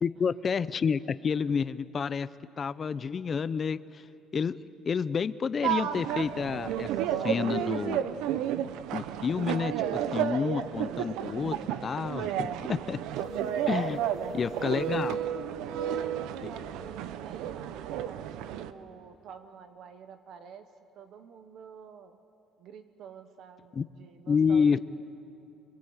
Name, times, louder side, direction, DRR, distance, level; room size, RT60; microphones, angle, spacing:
voice 1, 0.0-2.3 2.6-4.0 4.3-6.9 7.2-8.1 8.9-13.0 13.7-14.0 14.3-15.2 23.8-23.9 24.3-24.8, left 6 dB, 25° left, 15 dB, 0.5 m, -29 dB
sound 1, 5.6-18.7, right 10 dB, 85° right, 0.9 m, -32 dB
sound 2, 13.2-15.3, equal, ahead, 3.1 m, -42 dB
voice 2, 14.3-15.1 15.8-22.2 22.6-24.8, right 7 dB, 50° right, 8 dB, 1.1 m, -49 dB
26.5 x 23.0 x 8.0 m, 2.8 s
cardioid pair, 165°, 0 cm